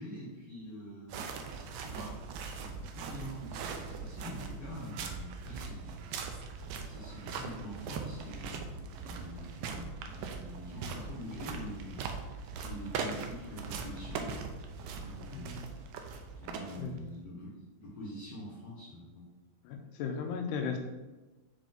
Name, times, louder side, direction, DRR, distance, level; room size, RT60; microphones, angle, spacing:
voice 1, 0.0-6.0 6.9-12.0 12.6-14.6 14.8-15.6 16.4-17.5 17.8-19.3, equal, 55° left, -9 dB, 2.1 m, -45 dB
sound 1, 1.1-17.1, right 5 dB, 80° right, 1.7 m, -41 dB
voice 2, 19.6-20.8, left 6 dB, 85° left, 4 dB, 2.2 m, -36 dB
5.5 x 5.0 x 3.8 m, 1.1 s
omnidirectional pair, 3.8 m